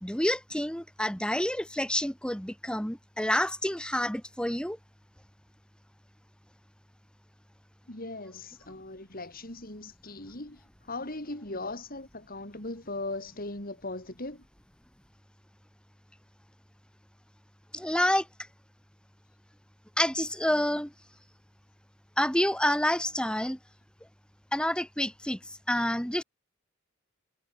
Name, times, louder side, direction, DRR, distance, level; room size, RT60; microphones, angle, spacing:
voice 1, 0.0-4.8 17.7-18.3 20.0-20.9 22.2-23.6 24.5-25.4 25.7-26.2, left 1 dB, 5° left, 2.7 m, -28 dB
voice 2, 7.9-14.4, left 2 dB, 45° left, 6.3 m, -39 dB
head